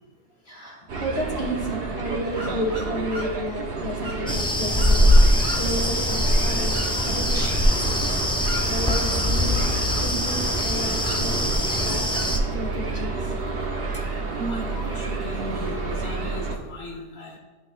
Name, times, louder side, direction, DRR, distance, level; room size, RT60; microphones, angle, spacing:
voice 1, 0.5-5.2 5.6-8.0 8.7-11.5 11.8-12.1 12.5-13.3, equal, 35° left, -2 dB, 2.1 m, -32 dB
sound 1, 0.9-16.6, right 3 dB, 70° right, 1.2 m, -30 dB
sound 2, 2.3-16.4, equal, 85° right, 2.0 m, -42 dB
sound 3, 4.3-12.4, equal, 5° left, 0.5 m, -22 dB
voice 2, 14.4-17.4, equal, 75° left, -2 dB, 1.5 m, -35 dB
13.5 x 6.0 x 2.4 m, 1.4 s
omnidirectional pair, 1.1 m